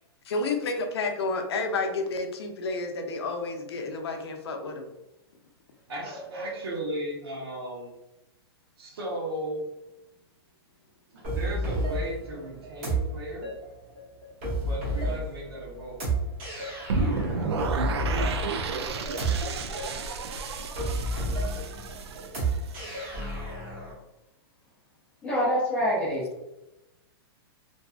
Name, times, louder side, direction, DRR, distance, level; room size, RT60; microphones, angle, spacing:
voice 1, 0.3-4.9 21.7-21.9, left 3 dB, 75° left, 5 dB, 0.5 m, -30 dB
voice 2, 5.9-7.9 8.8-9.7 11.1-13.5 14.6-16.0 18.4-19.1 21.5-21.6 22.1-22.5, right 1 dB, 65° right, -2 dB, 0.9 m, -36 dB
sound 1, 11.2-23.9, right 1 dB, 25° right, 0.7 m, -31 dB
sound 2, 16.9-22.9, right 3 dB, 90° right, 0.4 m, -31 dB
voice 3, 25.2-26.4, equal, 10° left, -7 dB, 0.4 m, -26 dB
2.6 x 2.3 x 2.3 m, 0.95 s
hypercardioid pair, 180°, 14 cm